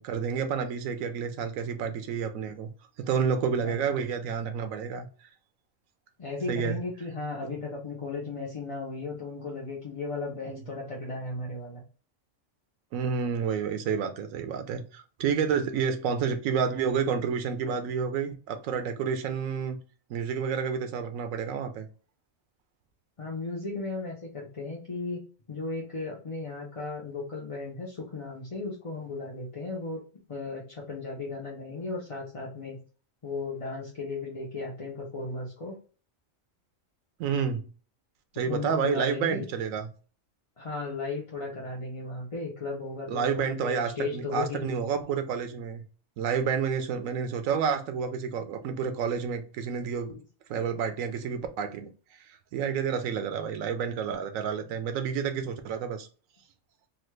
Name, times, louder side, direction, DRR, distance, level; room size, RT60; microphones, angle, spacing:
voice 1, 0.0-2.7 3.0-5.1 6.5-6.8 10.5-10.6 12.9-19.8 20.1-21.9 37.2-37.6 38.3-39.9 43.1-45.8 46.2-50.2 50.5-51.9 52.3-56.1, right 6 dB, 85° right, 1.0 m, -29 dB
voice 2, 6.2-11.8 23.2-25.2 25.5-30.0 30.3-32.8 33.2-35.8 38.5-39.5 40.6-44.7 50.1-50.2, left 3 dB, 40° left, 0.5 m, -35 dB
3.0 x 2.3 x 3.1 m
omnidirectional pair, 1.4 m